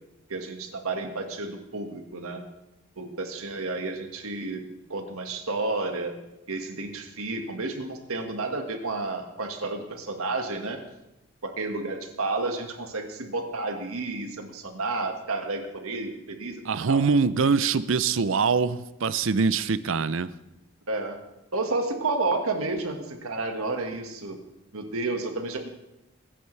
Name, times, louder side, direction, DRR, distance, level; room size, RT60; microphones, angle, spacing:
voice 1, 0.3-2.4 3.0-4.6 4.9-6.2 6.5-10.8 11.4-17.0 20.9-21.2 21.5-24.4 24.7-25.7, right 3 dB, 80° right, 4 dB, 1.8 m, -31 dB
voice 2, 16.7-20.3, right 5 dB, 65° right, 15 dB, 0.5 m, -23 dB
22.0 x 10.0 x 3.3 m, 0.92 s
head